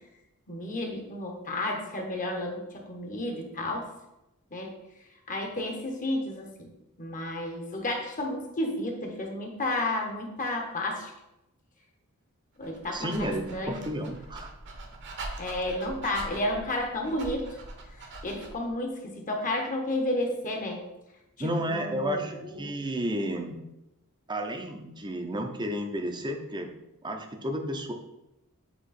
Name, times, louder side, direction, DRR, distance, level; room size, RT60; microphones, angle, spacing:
voice 1, 0.5-3.9 4.5-4.7 5.3-6.7 7.0-11.1 12.6-13.8 15.4-17.6 18.0-20.8 21.4-22.7, left 1 dB, 35° left, 2 dB, 1.0 m, -32 dB
Dog, 12.6-18.7, right 2 dB, 55° right, 1.0 m, -42 dB
voice 2, 12.9-14.5 21.4-23.6 24.3-26.7 27.0-27.9, right 1 dB, 20° right, 5 dB, 0.6 m, -32 dB
7.9 x 3.0 x 4.2 m, 0.91 s
head